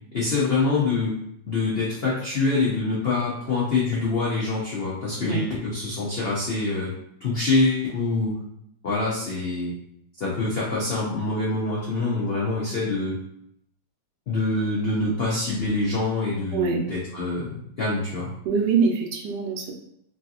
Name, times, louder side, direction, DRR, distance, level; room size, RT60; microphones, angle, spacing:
voice 1, 0.1-1.2 1.5-6.9 7.2-8.4 8.8-9.8 10.2-13.2 14.3-18.3, left 3 dB, 85° left, -6 dB, 0.5 m, -25 dB
voice 2, 16.5-16.8 18.4-19.7, right 5 dB, 80° right, 2 dB, 1.2 m, -24 dB
3.1 x 2.7 x 2.3 m, 0.74 s
omnidirectional pair, 1.9 m